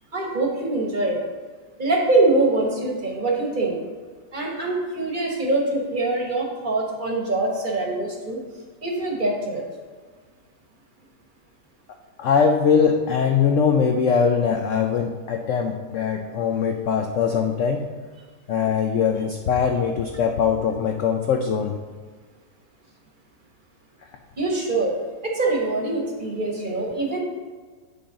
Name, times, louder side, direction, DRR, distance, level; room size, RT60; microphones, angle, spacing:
voice 1, 0.1-1.2 1.8-3.8 4.3-8.4 8.8-9.6 24.4-24.9 25.2-27.2, right 2 dB, 30° right, -1 dB, 1.1 m, -23 dB
voice 2, 12.2-17.9 18.5-21.7, left 6 dB, 75° left, 3 dB, 0.7 m, -21 dB
8.6 x 5.4 x 3.8 m, 1.5 s
omnidirectional pair, 1.9 m